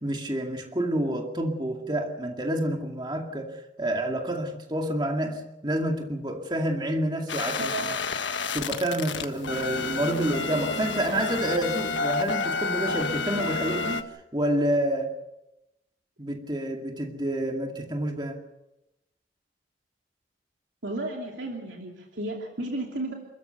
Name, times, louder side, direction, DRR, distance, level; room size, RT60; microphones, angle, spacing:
voice 1, 0.0-7.7 8.5-14.0 14.3-15.2 16.2-18.4, right 1 dB, 25° right, 2 dB, 2.3 m, -28 dB
sound 1, 7.3-14.0, left 4 dB, 90° left, 1.5 m, -30 dB
voice 2, 7.6-7.9 20.8-23.1, right 2 dB, 80° right, 0 dB, 3.0 m, -33 dB
29.0 x 13.5 x 8.1 m, 0.92 s
head